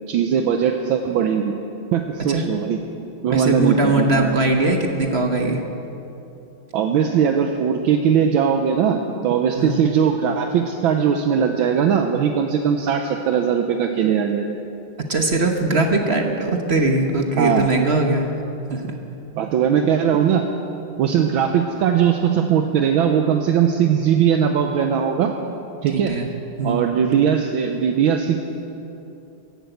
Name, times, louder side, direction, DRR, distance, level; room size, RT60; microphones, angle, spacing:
voice 1, 0.1-1.5 1.9-2.8 3.2-4.3 6.7-14.6 17.4-17.7 19.4-20.5 21.0-25.3 25.8-26.1 26.6-28.4, right 8 dB, 75° right, 4 dB, 1.5 m, -19 dB
voice 2, 3.3-5.6 9.6-9.8 15.1-18.3 18.7-18.9 25.9-26.3 26.6-26.9, right 2 dB, 40° right, 3 dB, 1.0 m, -20 dB
15.0 x 11.5 x 7.9 m, 2.9 s
omnidirectional pair, 2.3 m